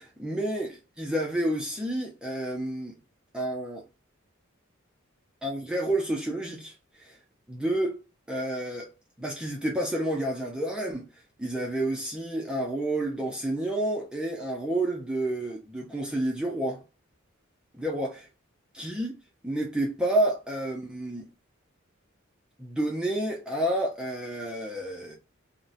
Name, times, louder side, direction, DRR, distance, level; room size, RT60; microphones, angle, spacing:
voice 1, 0.0-3.0 3.3-3.8 5.4-7.2 7.5-8.0 8.3-8.9 9.2-11.1 11.4-16.8 17.7-18.3 18.7-19.1 19.4-21.3 22.6-25.2, right 1 dB, 5° right, 0.4 m, -30 dB
3.6 x 2.1 x 2.5 m
head